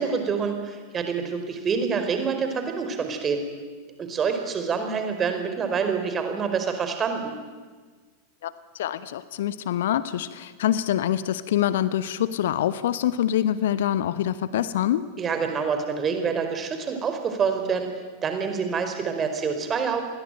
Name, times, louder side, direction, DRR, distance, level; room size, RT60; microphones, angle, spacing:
voice 1, 0.0-3.4 4.0-7.3 15.2-17.9 18.2-20.0, right 6 dB, 25° right, 6 dB, 4.8 m, -26 dB
voice 2, 8.4-15.1, left 11 dB, 55° left, 15 dB, 1.1 m, -25 dB
28.5 x 22.0 x 9.1 m, 1.4 s
figure-of-eight pair, 90°, 0 cm